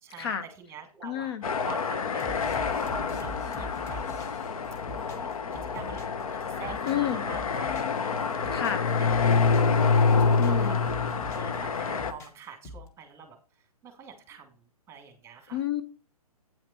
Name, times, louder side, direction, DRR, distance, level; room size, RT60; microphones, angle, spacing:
voice 1, 0.0-1.3 1.6-2.8 3.2-4.0 5.1-8.5 9.0-9.7 10.2-13.4 13.8-14.6 14.9-15.6, right 7 dB, 15° right, 6 dB, 2.0 m, -46 dB
voice 2, 1.0-1.4 6.9-7.2 8.5-8.8 10.4-10.8 15.5-15.8, left 10 dB, 40° left, 11 dB, 0.7 m, -30 dB
sound 1, 1.4-12.1, left 5 dB, 65° left, 1.0 m, -27 dB
sound 2, 2.2-6.2 6.5-8.0 8.3-9.8 10.1-11.5 11.9-12.9, left 1 dB, 15° left, 1.3 m, -43 dB
9.1 x 5.8 x 4.3 m, 0.34 s
figure-of-eight pair, 135°, 20 cm